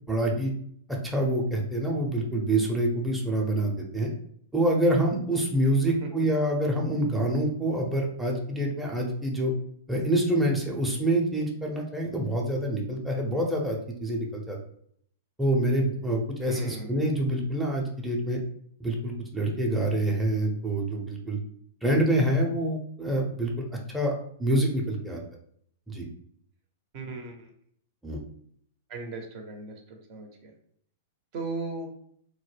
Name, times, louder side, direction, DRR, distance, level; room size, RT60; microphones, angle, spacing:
voice 1, 0.1-0.5 1.0-4.1 4.5-9.5 9.9-14.6 15.4-18.4 18.8-21.4 21.8-23.7 23.9-24.1 24.4-25.2 25.9-26.0 28.0-28.2, right 1 dB, 5° right, -2 dB, 0.5 m, -26 dB
voice 2, 16.4-17.2 26.9-27.5 28.9-30.5 31.3-31.9, right 3 dB, 45° right, 3 dB, 0.6 m, -37 dB
2.2 x 2.0 x 3.2 m, 0.66 s
hypercardioid pair, 110°, 0 cm